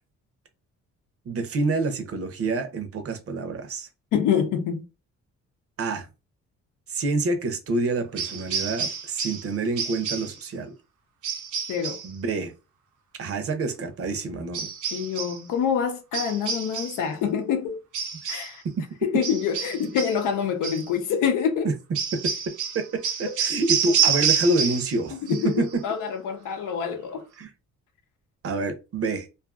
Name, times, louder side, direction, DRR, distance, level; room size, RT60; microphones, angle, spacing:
voice 1, 1.3-3.9 5.8-6.1 6.9-10.7 12.0-12.5 13.2-14.7 18.2-18.4 21.6-21.7 22.1-25.2 25.6-25.8 27.4-27.5 28.4-29.3, right 3 dB, 50° right, 0.6 m, -27 dB
voice 2, 4.1-4.8 11.7-12.0 14.9-17.8 18.3-18.6 19.0-21.7 25.2-27.2, left 7 dB, 85° left, 0.6 m, -26 dB
sound 1, 8.2-9.5 9.8-10.4 11.2-12.1 14.5-15.4 16.1-17.1 17.9-18.6 19.2-20.2 20.6-20.9 21.9-25.0 25.3-25.8, right 7 dB, 85° right, 0.8 m, -28 dB
2.5 x 2.4 x 2.4 m
cardioid pair, 90°, 30 cm